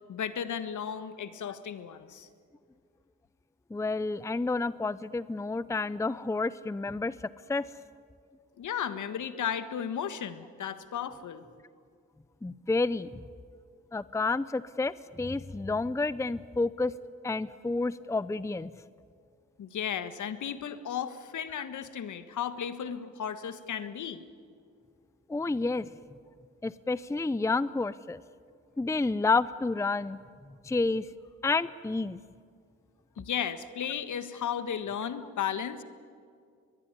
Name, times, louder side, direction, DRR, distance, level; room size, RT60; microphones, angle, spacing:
voice 1, 0.1-2.3 8.6-11.4 19.6-24.2 33.2-35.8, left 8 dB, 65° left, 12 dB, 1.6 m, -34 dB
voice 2, 3.7-7.7 12.4-13.2 13.9-16.9 17.2-18.7 25.3-25.9 26.6-28.2 28.8-30.2 30.6-31.1 31.4-32.2, left 3 dB, 10° left, 18 dB, 0.6 m, -30 dB
22.0 x 21.5 x 9.7 m, 2.2 s
supercardioid pair, 55°, 33 cm